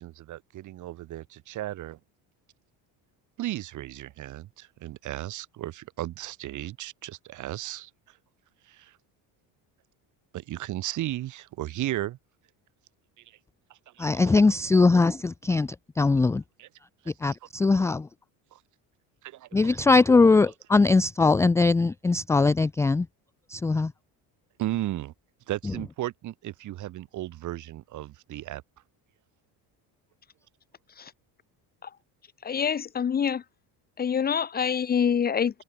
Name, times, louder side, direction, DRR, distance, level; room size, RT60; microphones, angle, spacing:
voice 1, 0.0-2.0 3.4-7.9 8.7-9.0 10.3-12.2 13.3-13.4 13.7-14.4 16.6-16.7 17.2-17.3 17.7-17.8 18.5-18.6 19.2-19.7 24.6-25.1 25.5-28.6, right 14 dB, 50° right, 5.7 m, -35 dB
voice 2, 14.0-16.4 17.2-18.1 19.5-23.1 23.5-23.9, left 3 dB, 5° left, 0.4 m, -21 dB
voice 3, 32.4-33.4 34.0-35.6, left 7 dB, 25° left, 1.7 m, -26 dB
cardioid pair, 180°, 39 cm